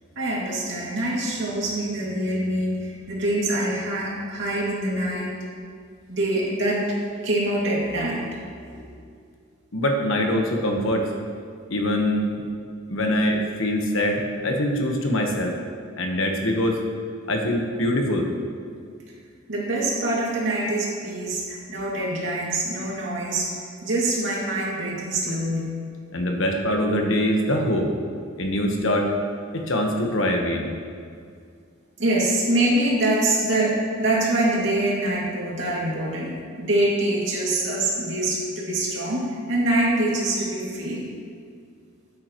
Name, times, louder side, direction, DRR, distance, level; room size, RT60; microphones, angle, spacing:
voice 1, 0.2-5.4 6.1-6.9 7.2-8.2 8.7-8.8 19.5-23.5 23.8-25.7 32.0-41.0, right 1 dB, 65° right, -4 dB, 2.5 m, -24 dB
voice 2, 9.7-11.0 11.7-12.4 12.9-15.5 16.0-16.8 17.3-18.3 26.1-27.9 28.4-29.1 29.5-30.7, left 1 dB, 80° left, 2 dB, 1.3 m, -23 dB
13.5 x 8.6 x 3.1 m, 2.2 s
head